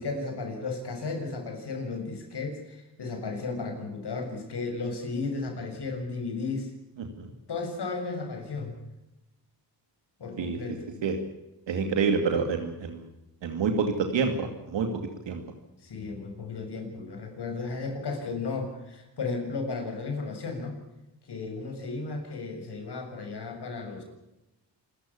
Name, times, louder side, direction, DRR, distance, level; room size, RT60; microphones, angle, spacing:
voice 1, 0.0-6.7 7.5-8.7 10.2-11.1 15.8-20.8 21.3-24.0, left 3 dB, 65° left, 4 dB, 7.2 m, -34 dB
voice 2, 7.0-7.3 10.4-10.6 11.0-11.2 11.7-13.1 13.4-15.4, right 5 dB, 80° right, 5 dB, 2.5 m, -28 dB
27.0 x 14.5 x 8.6 m, 0.94 s
cardioid pair, 75°, 44 cm